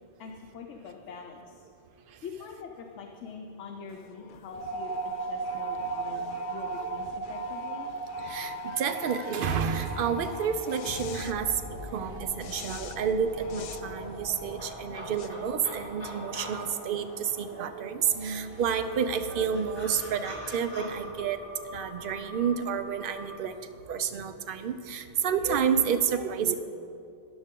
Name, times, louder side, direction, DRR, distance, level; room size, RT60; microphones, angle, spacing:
voice 1, 0.2-1.7 2.2-7.9, left 6 dB, 80° left, 2 dB, 1.0 m, -44 dB
sound 1, 3.9-16.3, left 7 dB, 60° left, 0.6 m, -43 dB
sound 2, 4.5-23.4, right 4 dB, 15° right, 1.5 m, -40 dB
voice 2, 6.1-6.5 6.8-6.9 8.2-21.4 21.7-23.5 23.9-26.5, right 7 dB, 55° right, 10 dB, 0.7 m, -30 dB
sound 3, 13.1-17.7 18.0-20.9, equal, 30° left, 3.2 m, -46 dB
13.5 x 9.7 x 3.7 m, 2.5 s
omnidirectional pair, 1.2 m